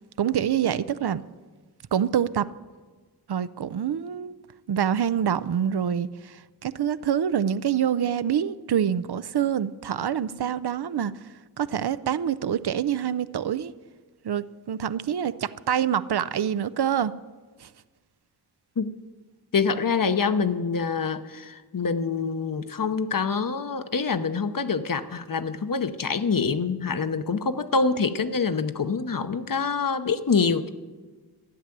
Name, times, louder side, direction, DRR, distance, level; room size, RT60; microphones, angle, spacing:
voice 1, 0.2-1.2 1.9-2.5 3.3-4.4 4.7-11.1 11.6-13.7 14.2-17.1 17.6-17.7, right 9 dB, 75° right, 15 dB, 0.5 m, -26 dB
voice 2, 19.5-30.7, left 5 dB, 55° left, 10 dB, 0.8 m, -26 dB
13.0 x 6.6 x 9.8 m, 1.4 s
wide cardioid pair, 60°, 40 cm